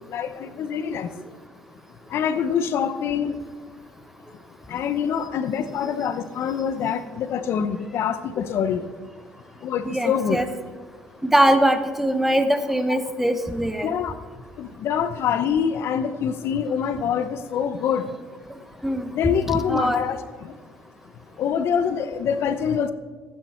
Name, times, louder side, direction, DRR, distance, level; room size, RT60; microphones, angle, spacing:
voice 1, 0.1-1.1 2.1-3.4 4.7-8.8 9.6-10.4 13.8-14.1 14.6-18.1 19.1-20.5 21.4-22.9, left 7 dB, 60° left, 12 dB, 0.7 m, -25 dB
voice 2, 9.9-10.5 11.2-13.9 18.8-19.1 19.5-20.0, right 1 dB, 5° right, 9 dB, 1.0 m, -21 dB
16.0 x 9.3 x 4.4 m, 1.5 s
cardioid pair, 105°, 5 cm